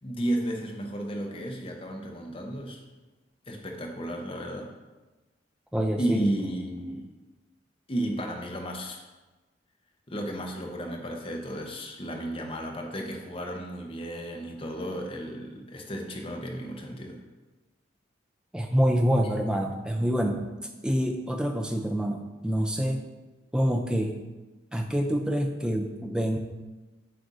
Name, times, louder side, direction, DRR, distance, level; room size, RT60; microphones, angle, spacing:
voice 1, 0.0-2.8 3.5-4.7 6.0-7.1 7.9-9.0 10.1-17.2, right 1 dB, 30° left, 1 dB, 0.7 m, -33 dB
voice 2, 5.7-6.2 18.5-20.5 20.8-23.0 23.5-24.1 24.7-26.4, equal, 5° right, 3 dB, 0.4 m, -26 dB
7.7 x 2.6 x 4.7 m, 1.2 s
head